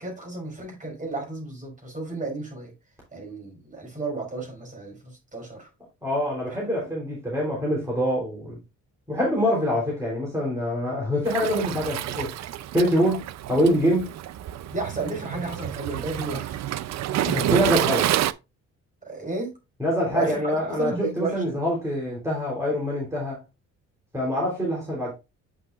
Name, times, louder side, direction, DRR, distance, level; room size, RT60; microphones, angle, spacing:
voice 1, 0.0-2.7 3.1-5.7 6.5-6.9 14.7-16.6 17.2-17.5 19.0-19.5 20.1-21.6, right 3 dB, 25° right, 4.6 m, -33 dB
voice 2, 6.0-8.6 9.1-12.3 12.7-14.1 17.3-18.1 19.8-23.4 24.1-25.1, equal, 10° right, 3.4 m, -25 dB
Waves surf, 11.3-18.3, right 12 dB, 60° right, 0.5 m, -28 dB
8.5 x 5.6 x 2.4 m
cardioid pair, 90°, 30 cm